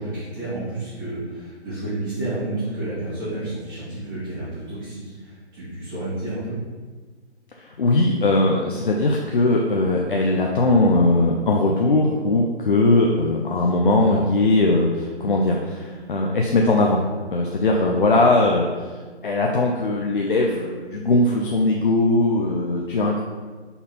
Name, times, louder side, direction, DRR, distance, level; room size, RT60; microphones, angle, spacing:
voice 1, 0.0-6.5 14.0-14.2, right 2 dB, 15° right, -15 dB, 1.8 m, -30 dB
voice 2, 7.6-17.0 17.3-18.6 19.2-23.2, left 2 dB, 50° left, 0 dB, 0.6 m, -20 dB
5.5 x 4.1 x 4.2 m, 1.4 s
hypercardioid pair, 165°, 34 cm